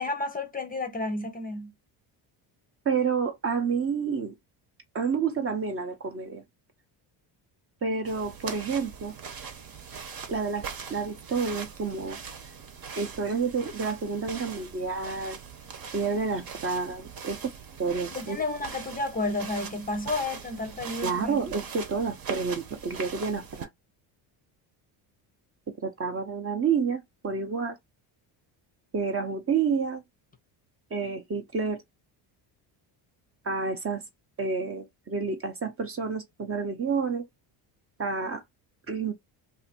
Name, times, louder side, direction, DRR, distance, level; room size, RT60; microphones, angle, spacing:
voice 1, 0.0-1.7 18.1-21.4, left 2 dB, 20° left, 0.7 m, -31 dB
voice 2, 2.8-4.4 4.9-6.4 7.8-9.1 10.3-12.2 12.9-15.4 15.9-17.5 17.8-18.4 21.0-23.7 25.8-27.8 28.9-30.0 30.9-31.8 33.4-34.0 34.4-37.2 38.0-38.4 38.9-39.1, right 5 dB, 30° right, 0.8 m, -29 dB
sound 1, 8.0-23.6, right 6 dB, 50° right, 1.1 m, -41 dB
2.7 x 2.6 x 4.2 m
cardioid pair, 115°, 47 cm